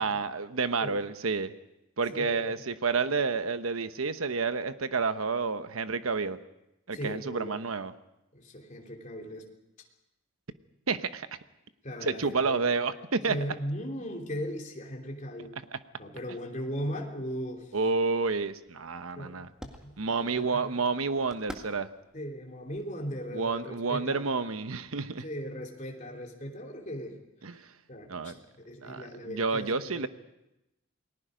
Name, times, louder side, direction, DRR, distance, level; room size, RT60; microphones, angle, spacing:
voice 1, 0.0-1.5 2.0-6.4 6.9-7.9 10.9-11.3 12.0-13.4 17.7-19.5 20.0-21.9 23.3-25.2 27.4-27.7 28.1-28.4 28.8-30.1, right 4 dB, 90° right, 11 dB, 1.0 m, -29 dB
voice 2, 2.1-2.5 6.9-7.6 8.3-9.5 11.8-12.7 13.3-15.6 16.0-17.7 19.2-20.7 22.1-24.2 25.2-27.2 27.9-30.1, equal, 35° left, 0 dB, 3.4 m, -38 dB
sound 1, 17.4-23.7, equal, 5° right, 1.9 m, -51 dB
29.0 x 20.5 x 5.2 m, 0.89 s
head